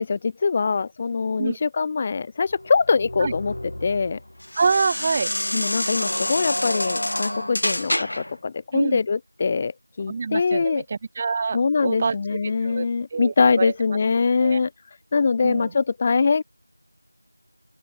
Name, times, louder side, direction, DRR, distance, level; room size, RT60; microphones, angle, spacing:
voice 1, 0.0-3.5 3.8-4.2 5.5-9.7 10.0-10.8 11.5-14.7 15.1-16.4, left 5 dB, 15° left, 0.8 m, -23 dB
sound 1, 2.5-8.4, left 1 dB, 60° left, 3.1 m, -28 dB
voice 2, 4.6-5.3 8.7-9.0 10.1-12.1 12.6-13.7 14.4-14.6 15.4-15.7, right 4 dB, 15° right, 5.1 m, -26 dB
open air
figure-of-eight pair, 175°, 0 cm